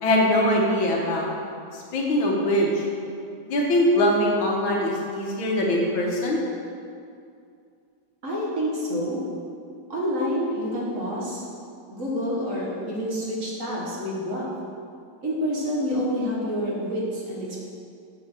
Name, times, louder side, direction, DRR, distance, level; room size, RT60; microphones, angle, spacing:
voice 1, 0.0-1.3 1.7-2.8 3.5-6.4, left 1 dB, 85° left, -2 dB, 2.0 m, -22 dB
voice 2, 8.2-9.2 9.9-11.4 11.9-14.5 15.2-17.6, equal, 45° right, -5 dB, 1.6 m, -28 dB
7.5 x 4.8 x 6.1 m, 2.4 s
omnidirectional pair, 2.1 m